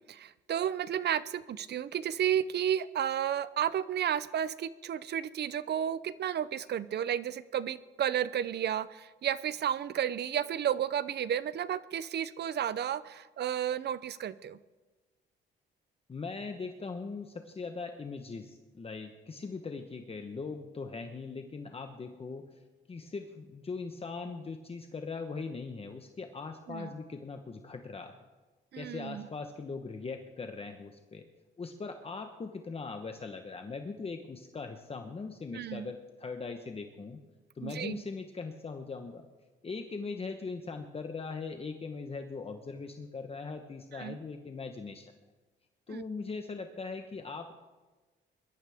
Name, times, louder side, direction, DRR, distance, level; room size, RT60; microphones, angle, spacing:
voice 1, 0.0-14.6 26.7-26.9 28.7-29.3 35.5-35.9 37.6-38.0 43.9-44.2 45.9-46.0, right 10 dB, 55° right, 17 dB, 0.6 m, -32 dB
voice 2, 16.1-28.2 28.7-31.2 31.6-37.2 37.5-39.3 39.6-45.0 45.9-47.5, left 4 dB, 30° left, 5 dB, 1.1 m, -40 dB
21.5 x 12.5 x 3.6 m, 1.2 s
cardioid pair, 90°, 20 cm